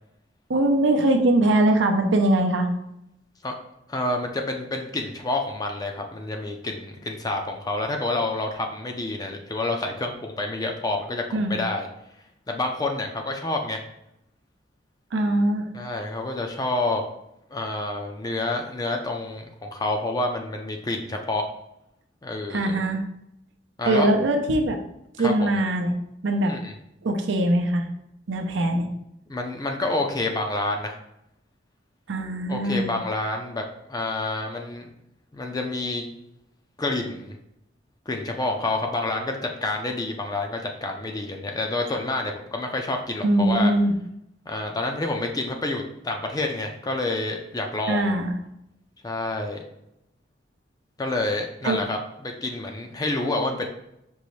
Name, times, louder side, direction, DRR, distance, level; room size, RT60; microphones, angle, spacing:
voice 1, 0.5-2.7 11.3-11.6 15.1-15.7 22.5-23.0 23.9-24.8 25.2-25.9 26.2-26.5 27.0-27.9 28.3-28.9 32.1-32.9 43.2-44.0 47.9-48.3 51.6-51.8, right 1 dB, 75° right, 4 dB, 0.6 m, -21 dB
voice 2, 3.9-11.9 12.5-13.8 15.7-17.0 17.5-21.4 22.2-22.6 23.8-24.1 25.2-25.5 26.5-26.7 29.3-31.0 32.5-34.8 35.3-36.1 36.8-37.4 38.1-43.7 44.5-48.1 49.0-49.6 51.0-53.7, left 2 dB, 20° left, 3 dB, 0.4 m, -28 dB
5.3 x 2.6 x 3.1 m, 0.80 s
head